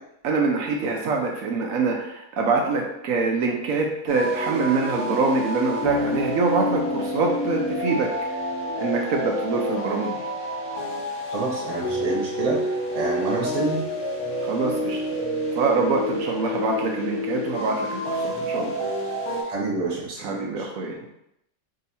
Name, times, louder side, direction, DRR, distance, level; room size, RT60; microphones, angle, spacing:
voice 1, 0.2-8.1 8.8-10.2 14.4-15.0 15.5-18.8 20.2-21.1, right 4 dB, 80° right, 0 dB, 1.1 m, -25 dB
sound 1, 4.1-19.4, equal, 80° left, 1.6 m, -28 dB
voice 2, 11.3-13.8 19.4-20.7, right 3 dB, 30° right, -4 dB, 1.0 m, -28 dB
5.2 x 2.7 x 2.7 m, 0.79 s
omnidirectional pair, 1.5 m